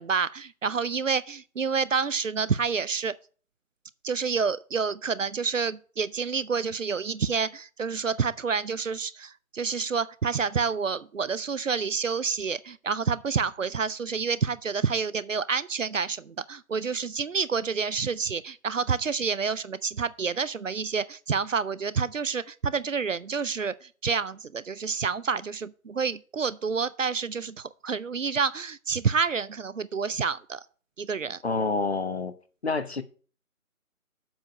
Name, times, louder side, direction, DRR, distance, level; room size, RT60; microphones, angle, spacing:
voice 1, 0.0-3.1 4.0-30.6 31.0-31.4, right 5 dB, 65° right, 0.5 m, -28 dB
voice 2, 31.4-32.3 32.6-33.0, left 3 dB, 45° left, 0.9 m, -27 dB
7.5 x 4.9 x 6.4 m
figure-of-eight pair, 155°, 43 cm